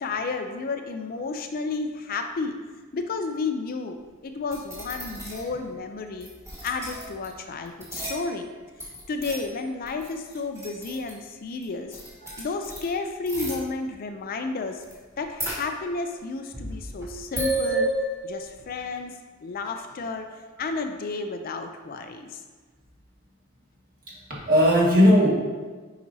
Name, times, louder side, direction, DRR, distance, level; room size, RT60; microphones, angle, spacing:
voice 1, 0.0-2.6 2.9-4.0 4.2-6.3 6.6-8.5 9.1-12.0 12.4-14.8 15.2-17.9 18.2-19.2 19.4-20.3 20.6-22.4, left 4 dB, 45° left, 6 dB, 0.4 m, -32 dB
sound 1, 4.5-5.6 6.2-7.3 7.7-8.5 8.8-11.3 11.6-11.7 11.9-12.9 13.3-13.6 14.8-14.9 15.2-16.1 16.5-18.6, right 1 dB, 15° right, 1.7 m, -32 dB
voice 2, 24.3-25.3, equal, 40° right, -6 dB, 1.8 m, -18 dB
7.5 x 4.9 x 2.7 m, 1.4 s
head